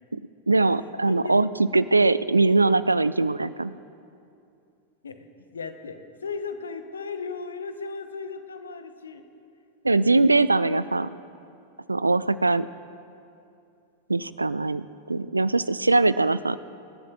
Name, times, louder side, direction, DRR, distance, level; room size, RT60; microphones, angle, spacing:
voice 1, 0.5-3.8 9.8-11.1 11.9-12.7 14.1-16.6, right 3 dB, 80° right, 16 dB, 0.3 m, -21 dB
voice 2, 1.0-1.4 5.0-5.3 5.5-9.2, left 4 dB, 70° left, 9 dB, 0.8 m, -36 dB
25.5 x 11.5 x 2.4 m, 2.6 s
figure-of-eight pair, 90°, 0 cm